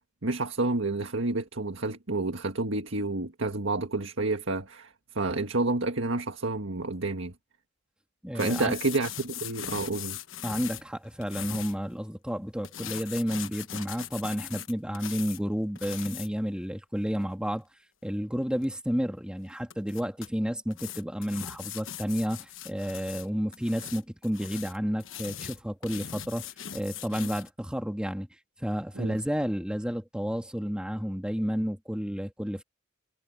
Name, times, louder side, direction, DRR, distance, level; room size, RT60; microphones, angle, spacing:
voice 1, 0.2-4.9 5.1-7.3 8.3-10.2 29.0-29.2, right 2 dB, 75° right, 1.7 m, -29 dB
voice 2, 8.2-8.7 10.4-17.7 18.0-28.3 28.6-32.6, equal, 5° right, 2.2 m, -31 dB
sound 1, 8.4-11.8 12.6-15.4 15.8-16.3 18.6-18.7 19.7-20.3 20.7-23.3 23.5-27.5, left 10 dB, 75° left, 1.1 m, -40 dB
head